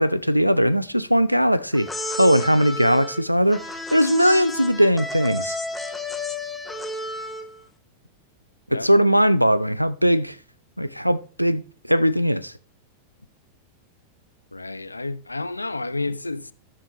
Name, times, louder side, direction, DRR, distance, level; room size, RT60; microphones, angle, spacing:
voice 1, 0.0-1.9 2.2-5.6 8.7-10.4 10.8-12.5, equal, 90° right, 0.4 m, -19 dB
sound 1, 1.7-7.6, left 2 dB, 5° left, 0.9 m, -32 dB
voice 2, 14.5-16.5, left 2 dB, 80° left, 0.4 m, -30 dB
14.0 x 5.8 x 3.1 m
figure-of-eight pair, 90°, 0 cm